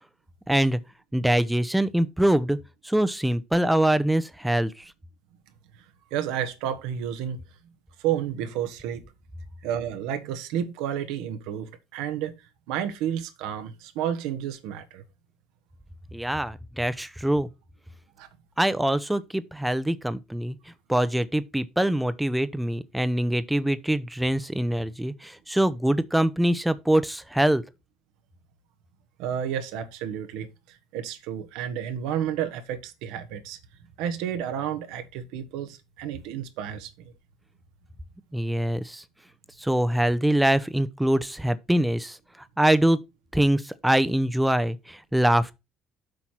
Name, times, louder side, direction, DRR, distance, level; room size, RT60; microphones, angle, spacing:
voice 1, 0.5-0.8 1.1-2.6 2.8-4.9 16.1-17.5 18.6-20.6 20.9-27.6 38.3-39.0 39.6-42.2 42.6-43.0 43.3-45.5, right 1 dB, 5° right, 1.0 m, -24 dB
voice 2, 6.1-7.4 8.0-9.0 9.6-12.3 12.7-15.0 18.2-18.3 29.2-33.6 34.0-37.1, right 9 dB, 65° right, 1.4 m, -31 dB
8.0 x 5.8 x 4.4 m
figure-of-eight pair, 55°, 0 cm